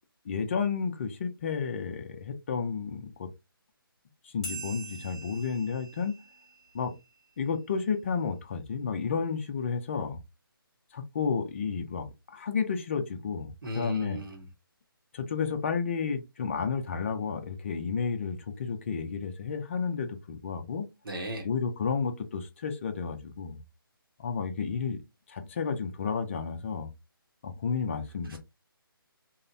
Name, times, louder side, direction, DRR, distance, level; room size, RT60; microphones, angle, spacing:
voice 1, 0.3-3.3 4.2-6.2 6.7-6.9 7.4-10.2 10.9-14.2 15.1-20.9 21.4-23.6 24.2-25.0 25.3-26.9 27.4-28.4, left 5 dB, 35° left, 0.4 m, -31 dB
sound 1, 4.4-7.5, right 2 dB, ahead, 1.0 m, -44 dB
voice 2, 13.6-14.5 21.0-21.5 28.2-28.4, right 1 dB, 70° right, 0.9 m, -36 dB
3.0 x 2.1 x 2.5 m
figure-of-eight pair, 155°, 12 cm